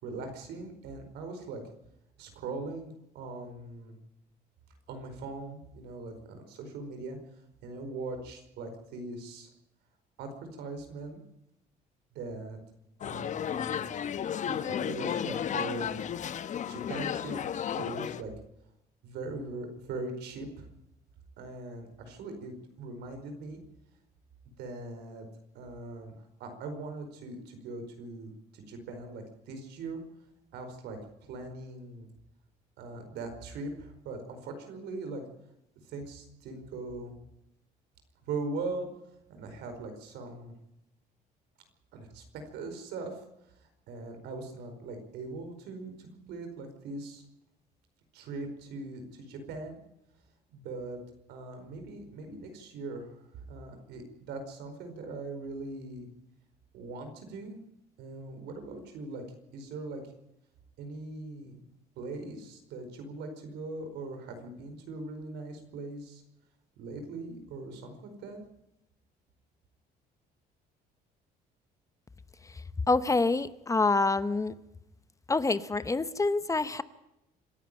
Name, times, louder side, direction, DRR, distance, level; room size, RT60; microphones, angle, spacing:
voice 1, 0.0-1.6 2.2-3.9 4.9-7.2 7.6-9.5 10.2-11.2 12.1-12.6 13.0-13.8 14.1-16.3 16.7-17.4 17.7-18.3 19.0-20.7 21.4-23.6 24.6-25.3 25.5-30.0 30.5-31.0 31.3-32.1 32.8-35.2 35.8-37.1 38.2-38.9 39.3-40.5 41.9-43.2 43.5-47.2 48.1-49.8 50.5-51.0 51.3-56.1 56.7-57.6 58.0-59.2 59.5-60.0 60.8-61.6 62.0-66.2 66.8-68.4, right 3 dB, 80° right, 6 dB, 4.8 m, -40 dB
sound 1, 13.0-18.2, left 9 dB, 45° left, 0.9 m, -33 dB
voice 2, 72.9-74.5 75.3-76.8, left 3 dB, 20° left, 14 dB, 0.8 m, -26 dB
26.5 x 11.0 x 9.1 m, 0.86 s
cardioid pair, 110°, 17 cm